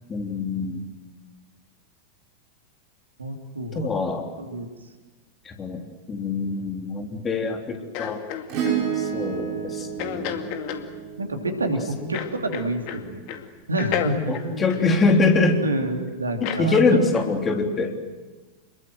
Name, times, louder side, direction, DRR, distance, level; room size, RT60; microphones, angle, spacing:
voice 1, 0.1-1.0 3.7-4.3 5.4-8.2 8.9-10.6 12.0-12.1 14.3-15.6 16.4-17.9, left 3 dB, 20° left, 4 dB, 3.4 m, -24 dB
voice 2, 3.2-4.0 4.4-4.7 11.2-13.2 13.7-14.7 15.6-17.0, right 1 dB, 75° right, 4 dB, 3.2 m, -28 dB
sound 1, 7.9-8.8 10.0-10.9 12.1-13.0 13.3-13.5 13.8-15.6 16.4-16.7 17.1-17.3, left 10 dB, 45° left, 2.2 m, -31 dB
Acoustic guitar / Strum, 8.5-13.1 15.0-15.1, right 8 dB, 40° right, 7.5 m, -31 dB
28.5 x 22.0 x 7.9 m, 1.3 s
figure-of-eight pair, 90°, 0 cm